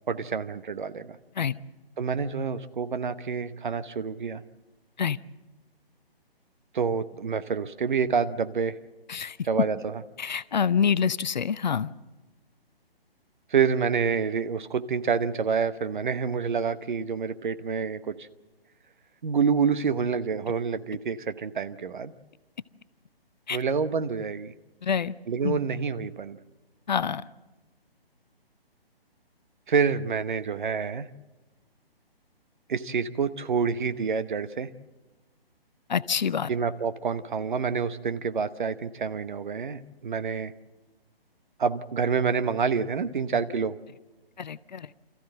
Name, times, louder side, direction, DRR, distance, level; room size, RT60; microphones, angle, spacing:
voice 1, 0.1-1.2 2.0-4.4 6.7-8.8 9.4-9.9 13.5-18.3 19.2-22.1 23.5-24.5 25.3-26.4 29.7-31.1 32.7-34.7 36.5-40.5 41.6-43.8, right 6 dB, 55° right, 12 dB, 1.0 m, -27 dB
voice 2, 10.2-11.9 23.5-23.6 24.8-25.1 25.4-25.6 26.9-27.3 35.9-36.5 44.4-44.9, left 7 dB, 50° left, 16 dB, 0.6 m, -26 dB
26.0 x 14.5 x 7.7 m, 1.2 s
figure-of-eight pair, 140°, 30 cm